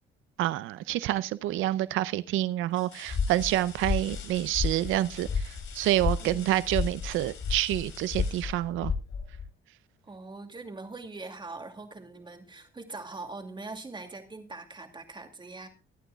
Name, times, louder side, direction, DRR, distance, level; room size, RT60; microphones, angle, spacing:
voice 1, 0.4-8.9, right 14 dB, 90° right, 16 dB, 0.5 m, -28 dB
sound 1, 0.9-1.4 2.0-2.1 2.7-9.4 11.2-11.3 11.8-12.8 14.1-14.2, left 7 dB, 75° left, 3.2 m, -49 dB
sound 2, 3.1-9.5, left 5 dB, 50° left, 5.9 m, -32 dB
voice 2, 6.2-6.5 10.0-15.7, right 3 dB, 25° right, 5 dB, 2.5 m, -42 dB
24.0 x 9.1 x 2.3 m, 0.30 s
cardioid pair, 90°, 20 cm